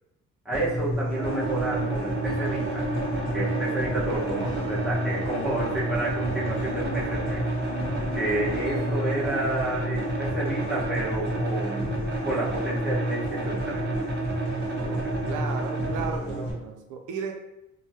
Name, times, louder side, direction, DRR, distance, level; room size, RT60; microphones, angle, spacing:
voice 1, 0.4-2.8 3.3-7.4 8.1-11.9 12.2-13.9, right 1 dB, ahead, -9 dB, 1.2 m, -30 dB
sound 1, 0.5-16.5, equal, 15° left, 1.3 m, -31 dB
sound 2, 1.1-10.8, left 5 dB, 55° left, 0.4 m, -39 dB
sound 3, 1.1-16.1, right 3 dB, 35° right, 0.7 m, -33 dB
voice 2, 14.8-17.3, right 5 dB, 85° right, 4 dB, 0.5 m, -35 dB
3.2 x 2.2 x 2.7 m, 0.89 s
cardioid pair, 90°, 30 cm